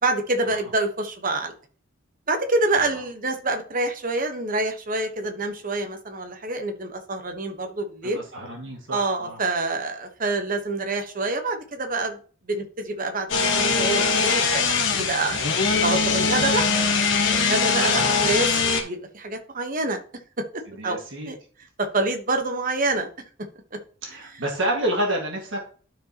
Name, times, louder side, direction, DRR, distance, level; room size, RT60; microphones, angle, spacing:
voice 1, 0.0-1.5 2.3-8.2 8.9-12.2 12.5-15.5 15.8-16.7 17.3-20.0 20.5-21.0 21.2-21.4 21.8-23.1 23.7-23.8, right 2 dB, 40° right, 5 dB, 1.1 m, -27 dB
voice 2, 8.0-9.4 17.8-18.5 20.8-21.3 24.0-25.6, right 1 dB, 60° right, 1 dB, 1.8 m, -29 dB
sound 1, 13.3-18.8, left 4 dB, 60° left, 1.4 m, -22 dB
12.0 x 4.8 x 2.9 m, 0.41 s
head